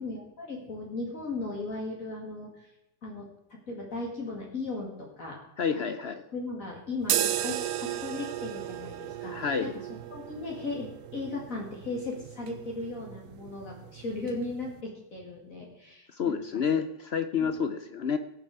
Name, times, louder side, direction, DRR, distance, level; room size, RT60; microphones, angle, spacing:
voice 1, 0.0-2.7 3.0-5.4 5.7-5.8 6.3-9.7 10.1-16.4 17.4-17.5, left 3 dB, 50° left, -2 dB, 2.5 m, -37 dB
voice 2, 5.6-6.2 9.3-9.7 16.1-18.2, left 6 dB, 65° left, 10 dB, 0.6 m, -29 dB
sound 1, 7.0-14.8, right 11 dB, 70° right, 0.8 m, -35 dB
18.0 x 7.5 x 4.8 m, 0.86 s
omnidirectional pair, 1.9 m